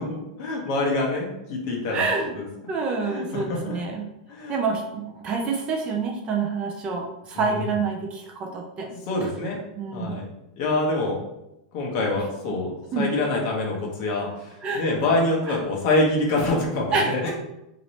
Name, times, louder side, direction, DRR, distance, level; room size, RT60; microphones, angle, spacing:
voice 1, 0.0-2.0 2.3-2.5 3.0-3.8 4.3-4.6 7.3-7.7 8.9-9.6 9.9-10.3 10.6-11.2 11.7-17.3, left 2 dB, 40° left, -2 dB, 0.9 m, -26 dB
voice 2, 1.9-2.3 2.7-4.0 4.5-8.9 9.8-10.2 12.9-13.1 14.6-14.8 15.5-15.6 16.9-17.1, right 4 dB, 25° right, 1 dB, 0.4 m, -27 dB
2.9 x 2.6 x 3.1 m, 0.89 s
supercardioid pair, 155°, 4 cm